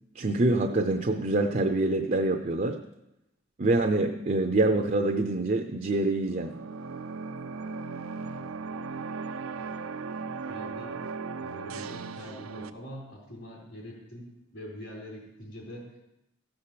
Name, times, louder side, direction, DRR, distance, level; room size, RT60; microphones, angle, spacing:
voice 1, 0.1-2.8 3.6-6.6, right 2 dB, 40° right, 5 dB, 0.6 m, -25 dB
sound 1, 6.3-12.7, right 4 dB, 85° right, 0.6 m, -37 dB
voice 2, 8.2-11.0 11.4-16.0, equal, 65° left, -7 dB, 3.9 m, -45 dB
15.5 x 5.8 x 6.8 m, 0.88 s
head